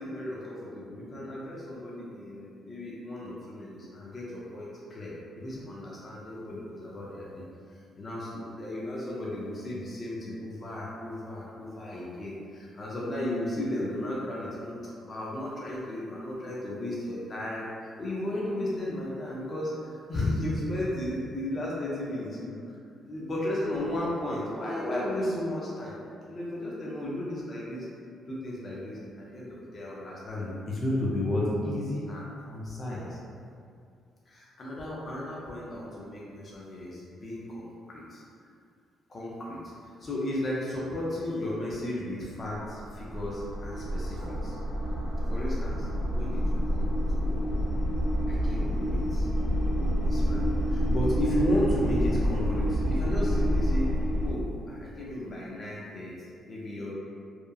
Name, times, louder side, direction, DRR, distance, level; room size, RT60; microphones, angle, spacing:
voice 1, 0.0-7.4 7.7-17.7 18.0-22.6 23.0-26.0 26.3-27.9 28.3-33.2 34.3-38.2 39.1-39.6 40.0-44.6 45.3-45.9 46.1-47.4 48.3-49.3 50.0-53.9 54.2-56.9, left 1 dB, 40° left, -6 dB, 0.5 m, -34 dB
sound 1, 42.7-54.3, equal, 80° left, 1.1 m, -28 dB
2.8 x 2.3 x 2.3 m, 2.4 s
cardioid pair, 90°, 0 cm